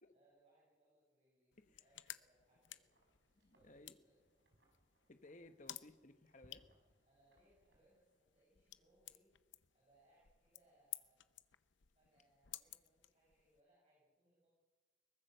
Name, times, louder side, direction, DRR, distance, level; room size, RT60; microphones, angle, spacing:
voice 1, 0.1-3.0 3.5-4.3 7.1-9.3 9.7-11.4 11.9-14.5, right 1 dB, 35° right, -6 dB, 7.9 m, -74 dB
sound 1, 1.5-13.6, left 14 dB, 70° left, 0.7 m, -56 dB
Wind, 1.9-8.4, right 1 dB, 60° right, 5.2 m, -75 dB
voice 2, 3.4-4.0 5.1-6.6, left 2 dB, 40° left, 8 dB, 1.1 m, -60 dB
22.5 x 20.0 x 6.7 m, 1.3 s
head